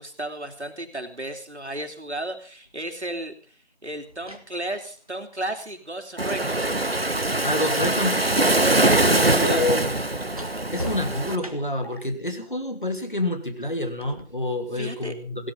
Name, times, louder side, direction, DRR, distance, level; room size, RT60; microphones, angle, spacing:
voice 1, 0.0-3.6 3.8-6.7 8.6-9.7 14.7-15.1, right 1 dB, 85° right, 4 dB, 3.7 m, -34 dB
sound 1, 2.6-2.8 3.9-7.9 8.2-12.0 14.0-14.2, equal, 35° right, 1.6 m, -42 dB
sound 2, 5.0-5.1 5.4-5.7 6.2-6.4 6.8-7.1 7.5-7.8 8.3-8.5 8.9-9.2 9.7-10.0 10.4-10.6 11.1-11.3 11.8-12.0, right 1 dB, 75° left, 6.6 m, -42 dB
Waves surf, 6.2-11.4, right 2 dB, 60° right, 1.4 m, -22 dB
voice 2, 7.4-8.2 9.1-9.8 10.7-15.5, left 1 dB, 50° left, 7 dB, 2.7 m, -28 dB
17.5 x 13.0 x 5.3 m, 0.39 s
figure-of-eight pair, 180°, 33 cm